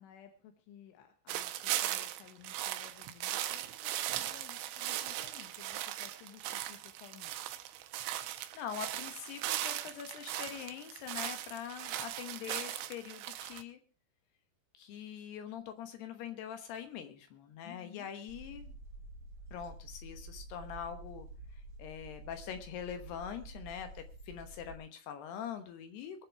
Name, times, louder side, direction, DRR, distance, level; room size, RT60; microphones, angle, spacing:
voice 1, 0.0-7.6 17.6-18.1, left 10 dB, 90° left, 5 dB, 3.8 m, -56 dB
sound 1, 1.3-13.6, right 13 dB, 85° right, 3.4 m, -38 dB
voice 2, 8.2-13.8 14.7-18.8 19.5-21.3 21.8-26.3, left 8 dB, 70° left, 8 dB, 2.9 m, -43 dB
sound 2, 18.3-24.7, right 2 dB, 55° right, 3.0 m, -49 dB
22.5 x 7.5 x 4.6 m, 0.37 s
omnidirectional pair, 5.4 m